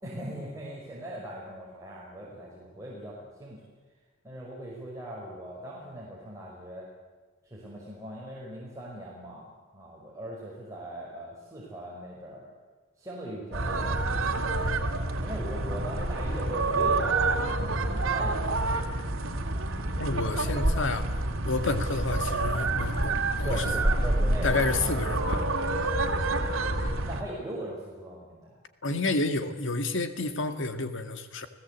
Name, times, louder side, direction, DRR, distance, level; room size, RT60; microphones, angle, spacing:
voice 1, 0.0-3.6 4.2-6.9 7.4-12.5 13.0-14.2 15.2-19.1 23.4-24.5 27.0-28.6, right 1 dB, 15° right, -5 dB, 5.5 m, -40 dB
sound 1, 13.5-27.2, right 2 dB, 85° right, 2.4 m, -28 dB
voice 2, 20.0-21.1 21.5-23.7 24.4-25.5 28.8-31.5, left 3 dB, 65° left, 8 dB, 2.1 m, -30 dB
30.0 x 17.5 x 8.4 m, 1.3 s
head